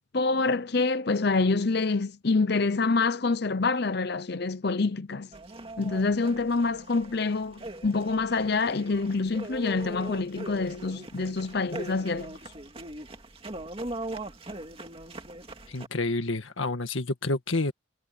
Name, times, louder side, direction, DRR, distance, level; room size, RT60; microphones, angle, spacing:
voice 1, 0.1-5.3 5.8-12.3, left 3 dB, 55° left, 0.7 m, -26 dB
sound 1, 5.3-15.9, right 2 dB, 30° right, 2.3 m, -41 dB
voice 2, 15.7-17.7, left 2 dB, 80° left, 1.8 m, -29 dB
head